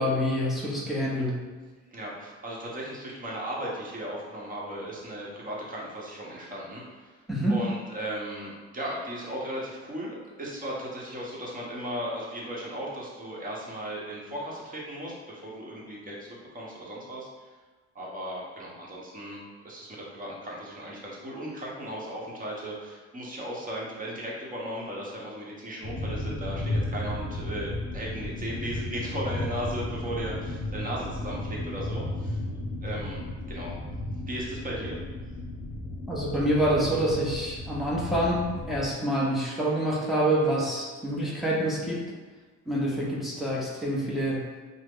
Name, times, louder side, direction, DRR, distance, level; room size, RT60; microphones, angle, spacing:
voice 1, 0.0-1.4 7.3-7.6 36.1-42.0 42.7-44.5, right 1 dB, ahead, -6 dB, 0.7 m, -27 dB
voice 2, 1.9-7.2 7.5-17.5 17.9-32.4 32.8-33.2 33.5-33.8 34.3-35.0, equal, 30° right, -4 dB, 0.9 m, -36 dB
sound 1, 25.8-38.9, left 1 dB, 40° left, 0.9 m, -34 dB
2.9 x 2.0 x 3.6 m, 1.4 s
cardioid pair, 90°, 30 cm